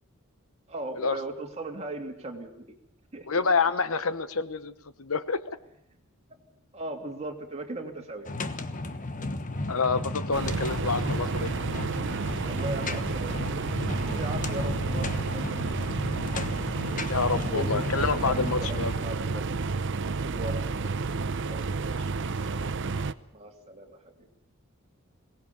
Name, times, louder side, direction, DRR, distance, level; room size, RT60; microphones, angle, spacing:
voice 1, 0.7-2.8 3.1-3.5 6.3-8.3 12.4-15.8 17.4-19.6 20.1-21.0 21.5-21.9 23.3-24.3, right 2 dB, 30° right, 2 dB, 2.9 m, -38 dB
voice 2, 3.3-4.7 5.0-5.4 9.7-11.5 17.1-18.9 22.5-22.7, left 4 dB, 70° left, 13 dB, 1.1 m, -27 dB
sound 1, 8.3-19.0, left 2 dB, 40° left, 1.3 m, -34 dB
sound 2, 10.3-23.1, right 4 dB, 60° right, 0.8 m, -30 dB
22.5 x 18.5 x 7.0 m, 0.73 s
head